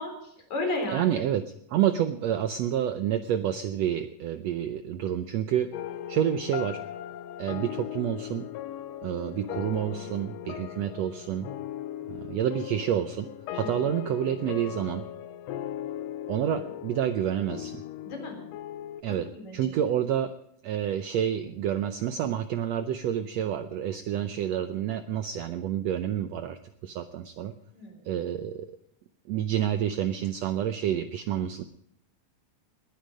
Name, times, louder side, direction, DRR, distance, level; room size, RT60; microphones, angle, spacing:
voice 1, 0.0-1.1 9.9-10.1 10.4-10.6 13.6-13.7 18.0-18.4 19.1-19.7 27.7-28.0, left 2 dB, 60° left, 2 dB, 5.1 m, -34 dB
voice 2, 0.9-5.7 6.1-6.8 7.4-8.5 9.0-11.5 12.1-15.0 16.3-17.8 19.0-20.3 20.6-27.5 28.0-28.7 29.3-31.6, right 10 dB, 75° right, 10 dB, 1.6 m, -29 dB
sound 1, 5.7-19.0, left 11 dB, 85° left, 1.4 m, -38 dB
20.5 x 10.5 x 5.2 m, 0.75 s
omnidirectional pair, 3.7 m